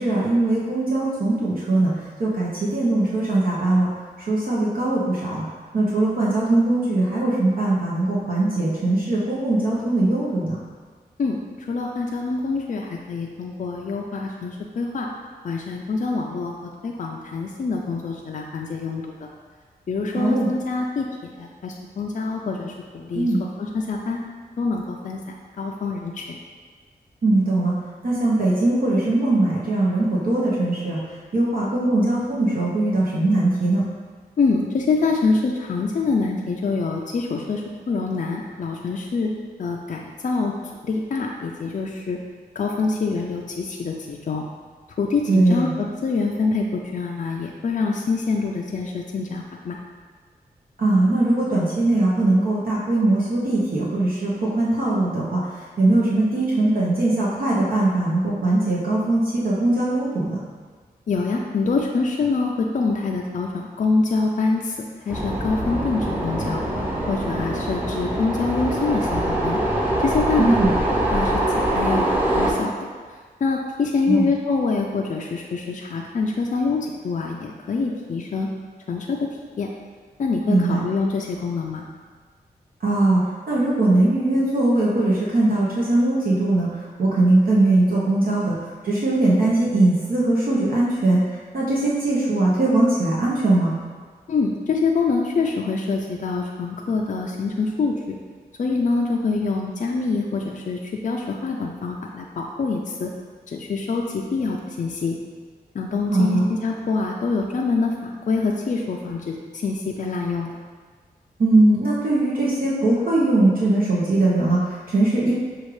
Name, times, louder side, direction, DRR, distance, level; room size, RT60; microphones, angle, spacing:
voice 1, 0.0-1.9 2.2-3.9 4.3-5.4 5.7-10.6 20.2-20.5 23.1-23.4 27.2-27.7 28.0-31.0 31.3-33.8 45.3-45.7 50.8-55.4 55.8-60.4 70.4-70.7 74.1-74.3 80.5-80.8 82.8-83.2 83.5-86.7 87.0-88.5 88.8-91.2 91.5-93.7 106.1-106.5 111.4-115.3, right 2 dB, 60° right, -6 dB, 0.9 m, -20 dB
voice 2, 11.7-15.1 15.4-19.0 19.9-24.2 24.6-26.4 34.4-39.3 39.6-40.5 40.8-42.2 42.6-44.4 45.0-49.8 61.1-64.8 65.1-66.6 67.1-69.6 70.0-70.6 71.1-71.3 71.7-72.1 72.3-72.7 73.4-78.5 78.9-79.3 79.6-79.7 80.2-81.8 94.3-98.2 98.6-103.1 103.5-105.2 105.7-110.5, left 4 dB, 50° left, 0 dB, 0.4 m, -25 dB
sound 1, 65.1-72.5, right 1 dB, 10° right, 0.9 m, -23 dB
6.3 x 2.4 x 3.2 m, 1.5 s
cardioid pair, 60°, 17 cm